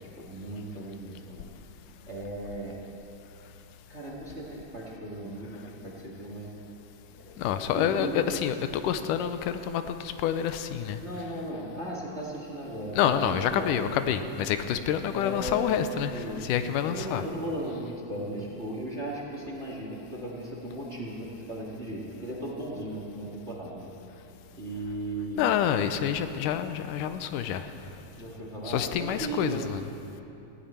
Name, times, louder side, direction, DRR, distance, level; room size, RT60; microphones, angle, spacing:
voice 1, 0.0-1.5 2.1-2.8 3.9-6.7 7.1-8.4 10.9-13.8 15.1-16.4 16.9-23.9 24.6-25.4 28.1-29.7, right 1 dB, 30° right, -3 dB, 1.5 m, -37 dB
voice 2, 7.4-11.0 13.0-17.2 25.4-27.7 28.6-29.9, left 9 dB, 90° left, 10 dB, 2.2 m, -28 dB
18.5 x 16.5 x 4.3 m, 2.9 s
omnidirectional pair, 3.7 m